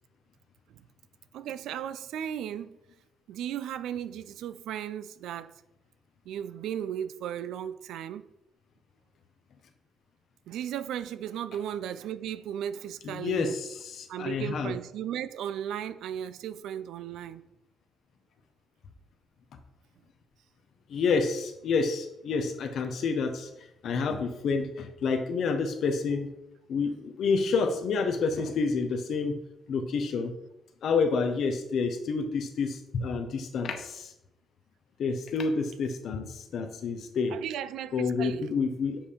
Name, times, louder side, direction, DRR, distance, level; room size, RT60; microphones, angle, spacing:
voice 1, 1.3-2.8 3.3-5.5 6.3-8.3 10.5-13.6 14.1-17.4 37.3-38.5, right 10 dB, 80° right, 0.3 m, -36 dB
voice 2, 13.0-14.7 20.9-23.5 23.8-26.3 26.7-29.3 29.7-30.3 30.8-34.1 35.0-37.4 37.9-39.0, left 4 dB, 65° left, 0.8 m, -29 dB
7.2 x 2.8 x 4.9 m
cardioid pair, 90°, 0 cm